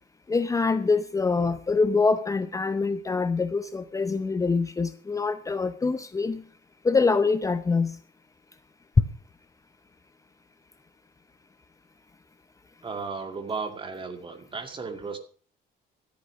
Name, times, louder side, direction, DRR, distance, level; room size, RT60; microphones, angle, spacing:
voice 1, 0.3-6.4 6.8-8.0, left 4 dB, 20° left, 0.7 m, -25 dB
voice 2, 12.8-15.2, right 4 dB, 30° right, 2.1 m, -34 dB
13.5 x 8.4 x 6.1 m
cardioid pair, 110°, 17 cm